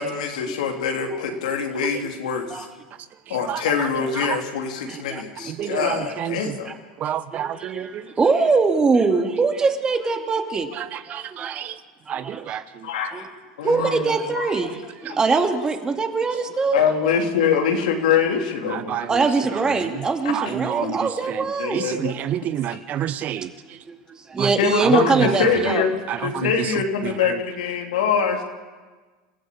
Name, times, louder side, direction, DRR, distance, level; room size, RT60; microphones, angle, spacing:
voice 1, 0.0-2.7 3.3-6.7 12.8-13.2 13.6-14.2 14.5-14.6 15.1-15.2 16.7-19.0 20.6-21.0 21.6-22.2 24.6-28.4, left 6 dB, 85° left, 3 dB, 3.3 m, -24 dB
voice 2, 3.3-3.9 4.2-4.4 5.5-6.6 7.0-8.0 10.8-10.9 11.1-11.7 12.1-12.6 18.7-19.1 20.3-21.0 21.7-23.5 24.4-24.5 24.8-25.1 26.1-26.7 27.0-27.4, right 11 dB, 40° right, 14 dB, 1.0 m, -28 dB
voice 3, 4.8-6.1 6.6-6.7 7.3-10.7 11.1-11.7 12.1-12.6 13.1-13.3 13.6-16.8 19.1-22.4 22.7-22.8 23.4-23.5 23.9-25.8, right 4 dB, 20° right, 5 dB, 2.4 m, -23 dB
28.0 x 14.5 x 8.6 m, 1.3 s
supercardioid pair, 115°, 4 cm